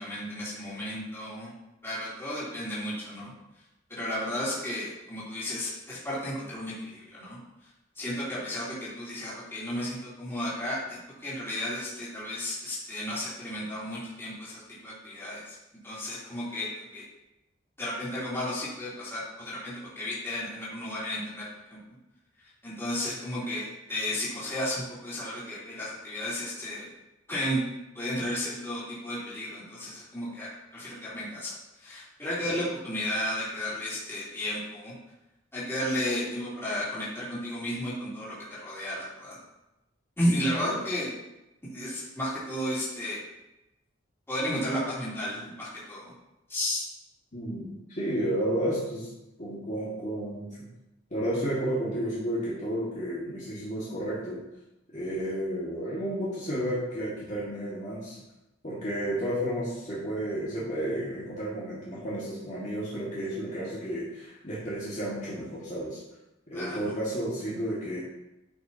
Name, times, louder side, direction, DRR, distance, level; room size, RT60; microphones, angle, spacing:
voice 1, 0.0-1.5 1.8-3.3 3.9-7.4 8.0-15.6 15.8-16.7 16.9-17.0 17.8-21.4 21.7-21.8 22.6-26.9 27.3-27.6 27.9-30.5 30.7-34.9 35.5-38.4 38.6-39.4 40.2-41.1 41.7-43.2 44.3-46.1 46.5-46.8 66.5-66.8, left 1 dB, 15° left, -9 dB, 3.1 m, -33 dB
voice 2, 47.3-49.1 49.4-50.5 51.1-54.4 54.9-58.2 58.6-66.0 66.5-68.0, right 1 dB, 40° left, -8 dB, 1.9 m, -32 dB
11.0 x 5.9 x 2.9 m, 0.95 s
head